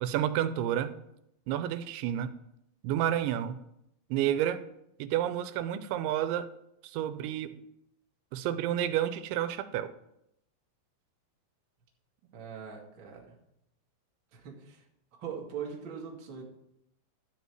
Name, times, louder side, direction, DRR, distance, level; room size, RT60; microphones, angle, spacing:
voice 1, 0.0-0.9 1.5-2.3 2.8-3.6 4.1-4.6 5.0-6.5 6.8-7.6 8.3-9.9, right 11 dB, 90° right, 12 dB, 3.0 m, -30 dB
voice 2, 12.3-13.3 14.3-14.8 15.1-16.4, right 7 dB, 45° right, -1 dB, 1.7 m, -41 dB
12.5 x 5.2 x 7.8 m, 0.80 s
omnidirectional pair, 5.2 m